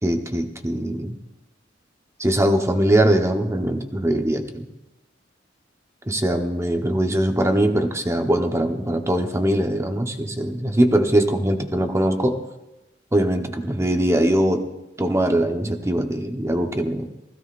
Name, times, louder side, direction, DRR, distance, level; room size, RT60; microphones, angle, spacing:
voice 1, 0.0-1.1 2.2-4.7 6.1-12.4 13.1-14.7 15.0-17.1, right 1 dB, 15° right, 5 dB, 1.0 m, -21 dB
20.0 x 15.5 x 2.5 m, 0.99 s
head